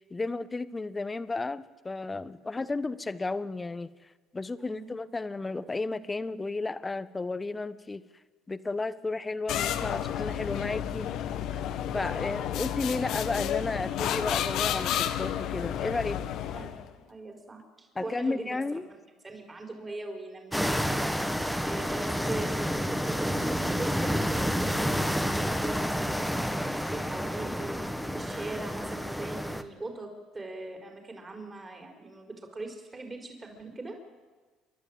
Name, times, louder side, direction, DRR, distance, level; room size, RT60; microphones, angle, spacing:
voice 1, 0.1-3.9 4.3-8.0 8.5-11.1 11.5-11.6 11.9-16.2 17.9-18.9, left 3 dB, 20° left, 14 dB, 1.0 m, -33 dB
voice 2, 4.6-4.9 16.5-18.8 19.2-21.2 21.6-27.7 28.1-30.1 30.3-33.9, right 2 dB, 25° right, 3 dB, 4.5 m, -41 dB
sound 1, 9.5-16.9, left 10 dB, 70° left, 1.3 m, -31 dB
sound 2, 20.5-29.6, equal, ahead, 1.4 m, -29 dB
28.5 x 12.0 x 9.0 m, 1.3 s
supercardioid pair, 85°, 0 cm